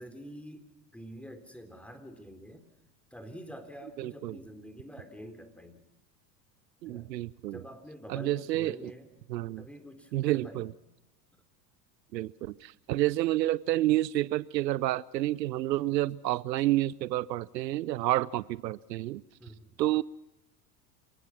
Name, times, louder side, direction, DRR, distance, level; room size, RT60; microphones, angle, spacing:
voice 1, 0.0-2.7 3.1-5.8 6.9-7.1 7.4-9.2 9.6-10.7 19.4-19.8, equal, ahead, 8 dB, 3.7 m, -47 dB
voice 2, 4.0-4.4 6.8-7.6 8.1-8.9 9.3-9.7 10.1-10.7 12.1-19.2 19.8-20.0, right 15 dB, 85° right, 20 dB, 0.7 m, -29 dB
29.0 x 17.0 x 5.9 m, 0.89 s
hypercardioid pair, 80°, 49 cm